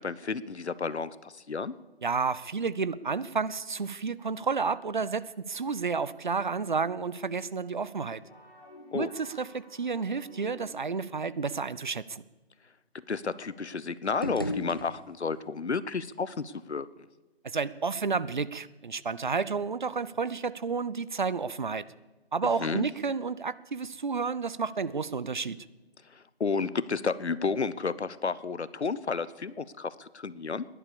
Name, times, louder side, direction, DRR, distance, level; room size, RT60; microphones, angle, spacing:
voice 1, 0.0-1.7 8.9-9.1 13.1-16.9 22.4-22.9 26.1-30.7, left 5 dB, 90° left, 17 dB, 0.9 m, -32 dB
voice 2, 2.0-8.2 8.9-12.2 17.4-21.8 22.3-25.6, right 5 dB, 45° right, 17 dB, 0.5 m, -31 dB
sound 1, 8.2-11.1, equal, 50° left, 5.9 m, -52 dB
sound 2, 14.0-15.5, equal, 20° left, 0.5 m, -36 dB
15.5 x 11.0 x 7.0 m, 1.2 s
figure-of-eight pair, 165°, 32 cm